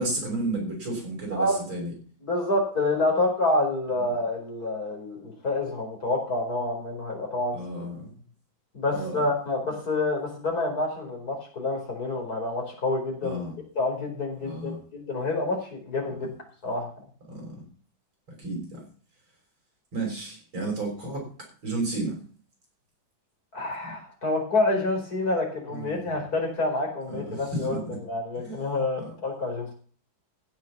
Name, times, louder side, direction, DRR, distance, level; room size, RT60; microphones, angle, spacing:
voice 1, 0.0-1.9 4.0-4.1 7.5-8.0 8.9-9.2 13.2-13.5 14.4-14.8 17.3-17.6 18.4-18.8 19.9-21.2 21.6-22.2 25.7-26.2 27.1-28.0 28.4-28.6, right 2 dB, 80° right, -1 dB, 6.8 m, -32 dB
voice 2, 2.2-7.8 8.7-13.5 13.8-16.3 16.6-16.9 23.5-29.7, left 2 dB, 50° left, 1 dB, 5.1 m, -28 dB
16.0 x 6.3 x 7.3 m, 0.42 s
omnidirectional pair, 2.1 m